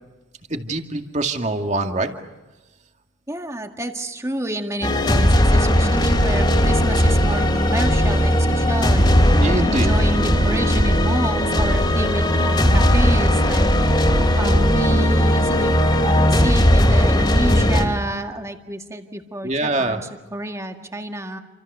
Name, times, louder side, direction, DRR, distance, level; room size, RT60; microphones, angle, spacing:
voice 1, 0.5-2.1 9.4-9.9 19.4-20.0, right 2 dB, 35° right, 5 dB, 2.2 m, -23 dB
voice 2, 3.3-21.4, right 1 dB, 15° right, 5 dB, 1.9 m, -29 dB
sound 1, 4.8-17.8, equal, 25° left, 3.1 m, -17 dB
28.5 x 26.5 x 6.8 m, 1.1 s
head